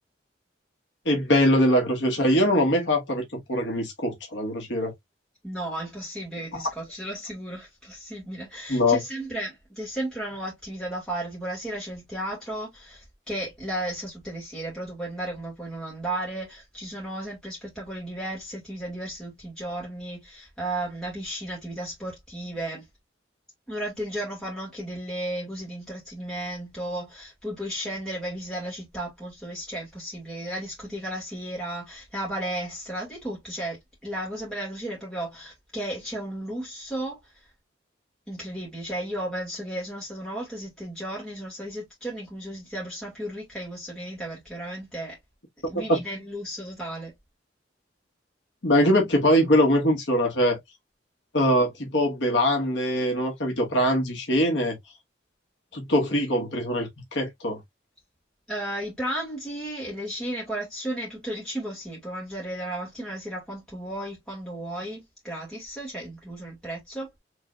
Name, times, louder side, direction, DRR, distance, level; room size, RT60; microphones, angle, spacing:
voice 1, 1.0-4.9 6.5-6.6 8.7-9.0 45.9-46.0 48.6-50.6 51.3-54.8 55.7-57.6, equal, 75° left, 1.3 m, -22 dB
voice 2, 5.4-22.8 23.7-37.3 38.3-45.2 45.7-47.1 58.5-67.1, right 1 dB, 5° left, 1.8 m, -34 dB
4.4 x 3.3 x 2.4 m
head